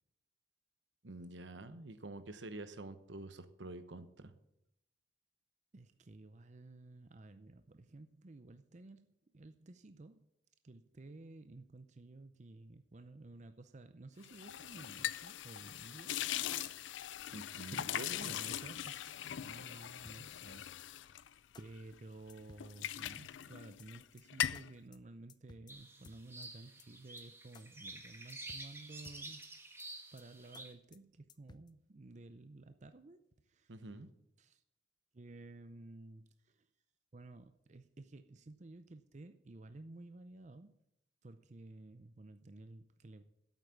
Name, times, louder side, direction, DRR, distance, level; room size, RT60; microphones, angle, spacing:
voice 1, 1.0-4.3 17.3-18.4 33.7-34.1, right 2 dB, 80° right, 11 dB, 1.1 m, -47 dB
voice 2, 5.7-10.3 10.6-16.2 17.7-17.9 18.2-20.7 21.6-29.5 30.1-33.8 34.4-34.6 35.1-36.7 37.1-40.7 41.2-43.2, right 2 dB, 40° right, 10 dB, 0.6 m, -54 dB
sound 1, 14.2-22.0 22.4-24.0 24.3-24.7, left 11 dB, 90° left, 0.4 m, -41 dB
sound 2, 20.0-20.5 20.8-20.9 21.2-21.3 21.5-21.6 21.9-22.0 22.3-22.7 23.0-23.5 23.8-23.9 24.2-24.3 24.5-24.6 24.9-25.0 25.3-25.7 26.0-26.5 26.8-26.9 27.2-27.3 27.5-27.6 27.9-28.0 28.3-28.7 29.0-29.5 29.8-29.9 30.2-30.3 30.5-30.6 30.9-31.0 31.3-31.7, left 3 dB, 25° left, 0.5 m, -58 dB
sound 3, 25.7-30.7, right 2 dB, 15° right, 1.4 m, -50 dB
8.3 x 8.2 x 8.4 m, 0.79 s
head